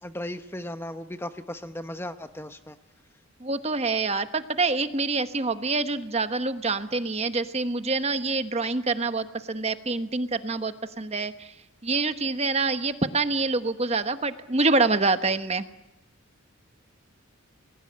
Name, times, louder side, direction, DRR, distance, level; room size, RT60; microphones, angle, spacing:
voice 1, 0.0-2.8, left 1 dB, 10° left, 9 dB, 0.9 m, -36 dB
voice 2, 3.4-11.5 11.8-15.6, right 3 dB, 30° right, 10 dB, 1.1 m, -26 dB
29.5 x 21.0 x 8.7 m, 0.93 s
head